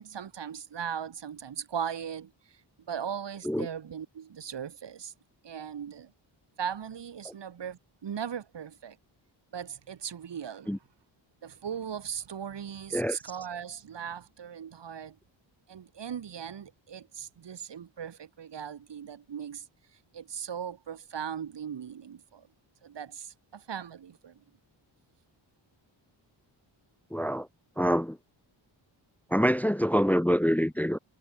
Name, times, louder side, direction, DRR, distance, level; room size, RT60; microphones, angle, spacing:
voice 1, 0.0-2.6 2.9-5.1 5.4-6.1 6.6-9.0 9.5-10.8 11.4-15.2 15.7-19.7 20.1-22.5 22.8-24.4, right 8 dB, 65° right, 2.9 m, -38 dB
voice 2, 27.1-27.5 27.8-28.2 29.3-31.0, equal, 5° left, 0.8 m, -25 dB
wide cardioid pair, 160°, 45 cm